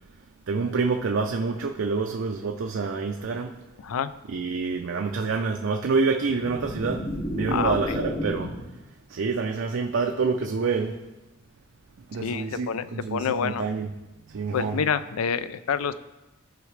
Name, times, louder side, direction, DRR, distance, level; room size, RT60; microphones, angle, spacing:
voice 1, 0.5-3.6 4.3-7.1 7.3-8.6 9.1-11.0 12.1-13.9 14.3-14.8, right 4 dB, 60° right, 4 dB, 0.4 m, -27 dB
sound 1, 6.2-8.7, left 1 dB, 50° left, 2.2 m, -31 dB
voice 2, 7.5-8.0 12.2-13.6 14.5-15.9, left 7 dB, 90° left, 14 dB, 0.4 m, -27 dB
14.0 x 4.7 x 3.2 m, 1.1 s
head